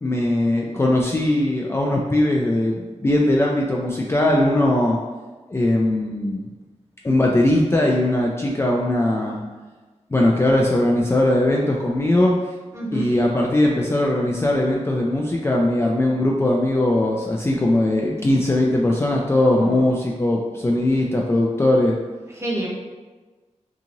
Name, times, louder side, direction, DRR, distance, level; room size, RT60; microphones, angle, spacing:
voice 1, 0.0-5.0 5.5-6.5 7.0-9.4 10.1-12.5 12.9-22.0, left 1 dB, 20° left, -2 dB, 0.3 m, -20 dB
voice 2, 12.7-13.1 19.5-19.9 22.4-22.7, right 1 dB, 20° right, -4 dB, 0.8 m, -28 dB
2.9 x 2.5 x 2.6 m, 1.3 s
cardioid pair, 55°, 12 cm